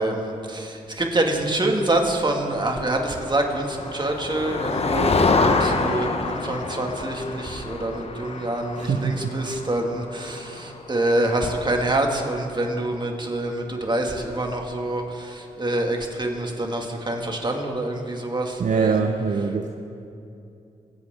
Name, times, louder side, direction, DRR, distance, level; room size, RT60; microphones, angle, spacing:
voice 1, 0.0-19.0, right 1 dB, 30° right, 2 dB, 2.2 m, -26 dB
Motor vehicle (road), 3.2-10.9, left 3 dB, 45° left, 1.1 m, -26 dB
voice 2, 8.8-9.3 18.6-19.7, right 5 dB, 55° right, 5 dB, 0.7 m, -23 dB
23.5 x 8.6 x 3.8 m, 2.7 s
supercardioid pair, 50°, 15 cm